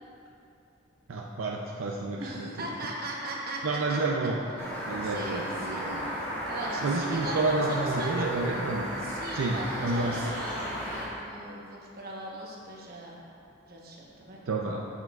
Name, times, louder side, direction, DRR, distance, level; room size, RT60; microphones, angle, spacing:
voice 1, 1.1-2.7 3.6-4.4 4.9-6.2 6.8-8.9 9.3-10.3 14.5-14.8, right 3 dB, 80° right, -1 dB, 0.5 m, -30 dB
voice 2, 2.2-4.0 5.0-5.9 6.4-8.2 9.0-13.2 13.7-14.4, right 1 dB, 50° right, -3 dB, 1.0 m, -39 dB
sound 1, 4.6-11.0, equal, 10° left, 1.2 m, -35 dB
7.6 x 7.3 x 2.4 m, 2.6 s
head